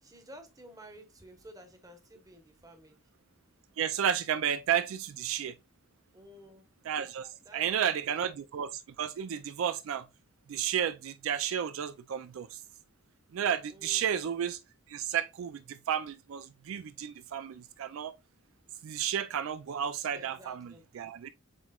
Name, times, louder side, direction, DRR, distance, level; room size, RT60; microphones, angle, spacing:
voice 1, 0.0-3.1 6.1-6.7 7.4-8.2 13.7-14.1 20.1-20.8, equal, 15° right, 0.9 m, -52 dB
voice 2, 3.8-5.5 6.9-10.1 10.5-12.6 13.3-14.6 14.9-18.1 18.8-21.3, right 8 dB, 70° right, 0.3 m, -32 dB
7.6 x 3.0 x 2.3 m
head